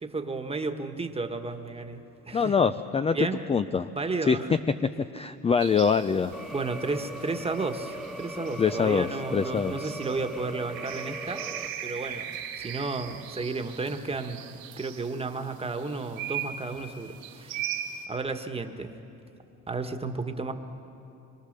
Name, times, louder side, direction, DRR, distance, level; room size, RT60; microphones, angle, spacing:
voice 1, 0.0-2.0 2.3-2.7 3.1-3.4 3.9-4.6 6.5-11.4 11.8-14.4 14.8-17.6 18.1-18.9 19.7-20.5, right 3 dB, 15° right, 7 dB, 1.4 m, -33 dB
voice 2, 2.3-3.2 3.5-3.9 4.3-4.4 5.1-6.4 8.6-9.9, left 6 dB, 20° left, 11 dB, 0.4 m, -24 dB
sound 1, 5.6-18.0, right 9 dB, 85° right, 3.1 m, -40 dB
sound 2, 6.3-11.7, right 1 dB, ahead, 1.3 m, -39 dB
25.0 x 23.5 x 6.7 m, 2.9 s
cardioid pair, 110°, 34 cm